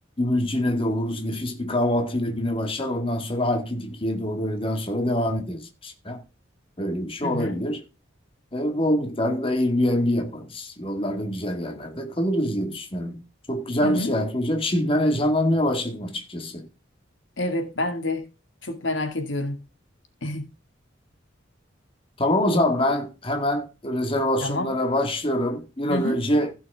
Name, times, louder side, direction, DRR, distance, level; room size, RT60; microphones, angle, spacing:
voice 1, 0.2-6.2 6.8-7.8 8.5-13.2 13.5-16.7 22.2-26.5, left 1 dB, 30° left, 1.8 m, -25 dB
voice 2, 7.2-7.6 13.8-14.1 17.4-18.3 18.6-19.6 20.2-20.5 24.4-24.7 25.9-26.2, left 1 dB, 75° left, 2.1 m, -28 dB
15.5 x 6.3 x 3.5 m
head